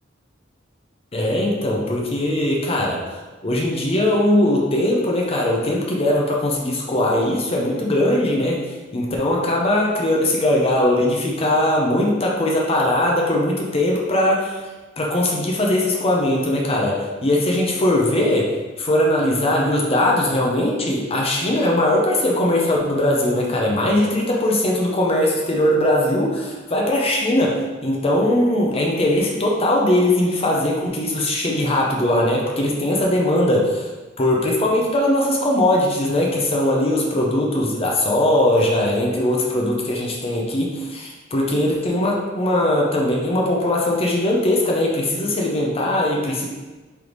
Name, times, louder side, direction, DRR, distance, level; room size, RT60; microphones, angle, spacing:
voice 1, 1.1-3.0 3.4-8.6 8.9-14.6 15.0-33.9 34.2-46.5, left 1 dB, 30° left, -2 dB, 0.5 m, -20 dB
3.4 x 3.1 x 3.8 m, 1.2 s
head